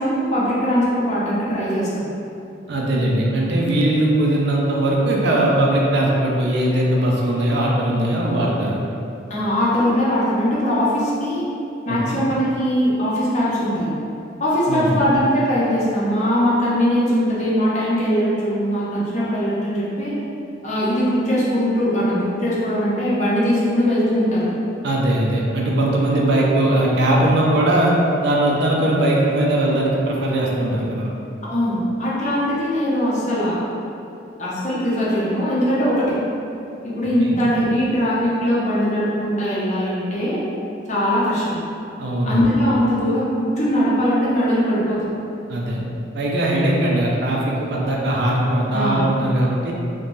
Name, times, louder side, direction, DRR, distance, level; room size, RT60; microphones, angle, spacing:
voice 1, 0.0-1.9 9.3-11.5 11.9-13.9 14.4-20.2 20.6-24.5 31.4-33.6 34.4-36.2 36.8-40.4 40.9-41.6 42.2-45.1 48.7-49.0, equal, 40° left, -8 dB, 0.6 m, -20 dB
voice 2, 2.7-8.8 11.9-12.2 14.7-15.0 24.8-27.9 28.2-31.1 37.2-37.4 42.0-42.4 45.5-45.8 46.1-49.7, right 1 dB, 65° right, -3 dB, 0.4 m, -20 dB
3.1 x 2.2 x 2.5 m, 2.7 s
head